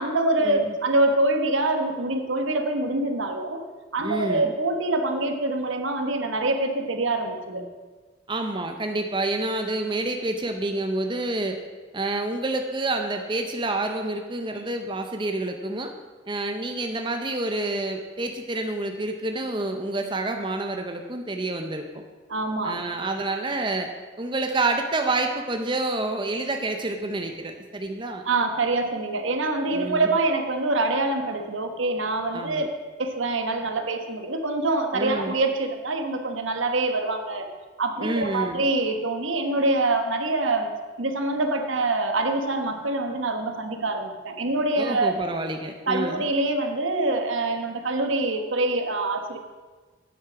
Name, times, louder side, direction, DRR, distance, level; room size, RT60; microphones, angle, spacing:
voice 1, 0.0-3.6 3.9-7.6 14.6-14.7 22.3-22.8 28.3-32.7 33.0-37.5 37.8-40.7 41.0-45.2 45.9-49.4, right 2 dB, 80° right, 5 dB, 1.2 m, -25 dB
voice 2, 4.0-4.5 8.3-11.6 11.9-15.9 16.3-22.0 22.6-23.9 24.2-28.2 29.7-30.1 32.3-32.7 34.9-35.3 38.0-38.6 44.8-46.2, right 2 dB, 25° right, 4 dB, 0.7 m, -28 dB
9.3 x 7.8 x 6.1 m, 1.4 s
head